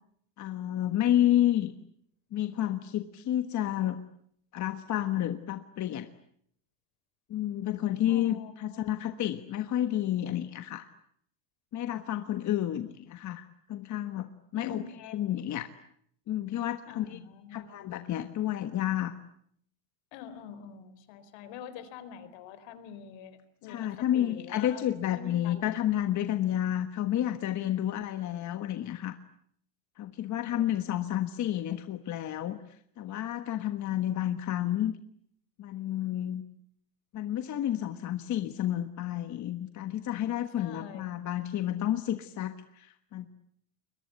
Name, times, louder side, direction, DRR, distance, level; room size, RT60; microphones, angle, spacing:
voice 1, 0.4-1.7 2.3-4.0 4.5-6.1 7.3-10.9 11.7-15.7 16.3-17.2 17.5-19.1 23.7-29.2 30.0-32.6 33.0-34.9 35.6-36.4 37.1-43.3, left 12 dB, 35° left, 8 dB, 1.4 m, -30 dB
voice 2, 8.1-8.9 14.5-15.0 16.9-17.7 20.1-24.8 25.1-25.7 27.8-27.9 30.5-30.7 40.6-41.1, left 7 dB, 65° left, 12 dB, 4.4 m, -45 dB
30.0 x 22.5 x 8.2 m, 0.67 s
cardioid pair, 140°, 48 cm